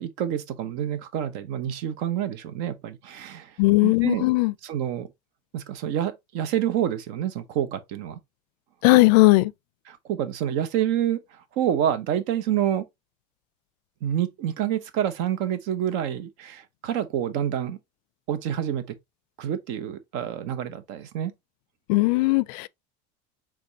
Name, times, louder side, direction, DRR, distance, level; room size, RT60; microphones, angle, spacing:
voice 1, 0.0-3.5 3.8-4.3 4.6-5.1 5.5-8.2 9.9-11.2 11.5-12.8 14.0-17.8 18.3-18.8 19.4-21.3, right 10 dB, 60° right, 0.9 m, -27 dB
voice 2, 3.6-4.5 8.8-9.5 21.9-22.7, left 22 dB, 80° left, 0.4 m, -18 dB
5.1 x 3.6 x 2.8 m
cardioid pair, 160°, 20 cm